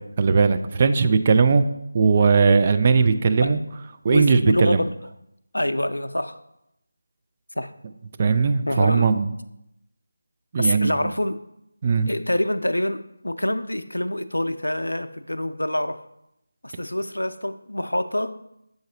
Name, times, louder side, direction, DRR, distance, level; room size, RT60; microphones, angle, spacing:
voice 1, 0.2-1.6 1.9-3.6 4.0-4.8 8.2-9.3 10.5-11.0 11.8-12.1, right 5 dB, 30° right, 9 dB, 0.3 m, -18 dB
voice 2, 4.1-4.9 5.5-6.4 7.6-7.7 8.7-9.1 10.6-11.4 12.1-16.0 16.6-18.4, left 1 dB, 80° left, 10 dB, 0.4 m, -26 dB
6.9 x 3.9 x 3.9 m, 0.83 s
figure-of-eight pair, 160°, 0 cm